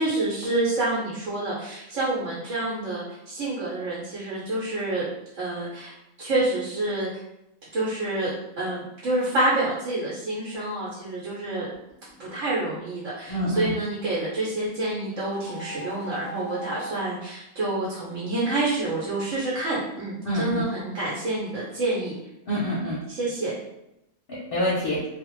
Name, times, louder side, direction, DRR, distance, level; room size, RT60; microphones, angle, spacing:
voice 1, 0.0-5.0 5.3-7.2 7.7-11.7 12.2-22.1 23.1-23.5, right 2 dB, 75° right, -7 dB, 1.1 m, -28 dB
sound 1, 11.7-12.6 15.0-16.9, equal, 15° right, 1.1 m, -40 dB
voice 2, 13.3-13.7 20.2-20.6 22.5-23.0 24.3-25.1, equal, 55° left, -6 dB, 0.7 m, -26 dB
2.4 x 2.0 x 3.0 m, 0.86 s
omnidirectional pair, 1.4 m